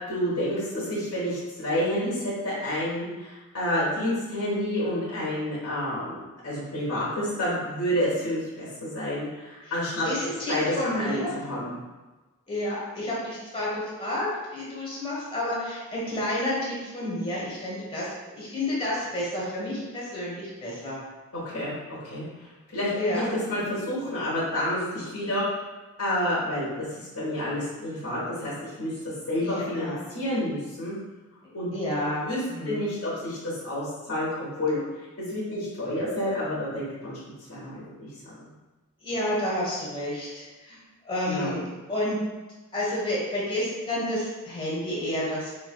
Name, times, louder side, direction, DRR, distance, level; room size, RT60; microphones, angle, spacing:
voice 1, 0.1-6.2 6.4-10.1 10.5-11.7 21.3-21.7 22.0-22.2 22.7-25.4 26.0-26.8 27.1-28.9 29.3-30.9 31.5-31.7 32.2-34.8 35.2-38.1 38.4-38.5 41.3-41.5, left 1 dB, 80° left, -10 dB, 1.3 m, -29 dB
voice 2, 10.0-11.3 12.5-14.3 14.5-18.1 18.3-21.0 22.9-23.3 29.4-30.0 31.4-32.8 39.0-40.8 41.0-41.6 41.9-42.2 42.7-45.5, left 1 dB, 25° left, -6 dB, 1.2 m, -30 dB
4.7 x 3.2 x 2.3 m, 1.2 s
head